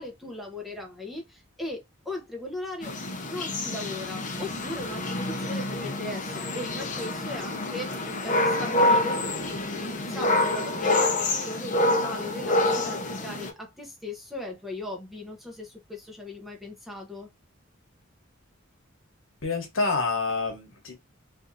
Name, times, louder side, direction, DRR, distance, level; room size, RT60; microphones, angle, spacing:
voice 1, 0.0-2.9 3.3-9.2 9.7-17.3, left 2 dB, ahead, 0.7 m, -38 dB
sound 1, 2.8-13.5, left 2 dB, 40° left, 0.6 m, -27 dB
voice 2, 19.4-21.0, left 3 dB, 80° left, 1.1 m, -27 dB
3.4 x 2.5 x 2.6 m
head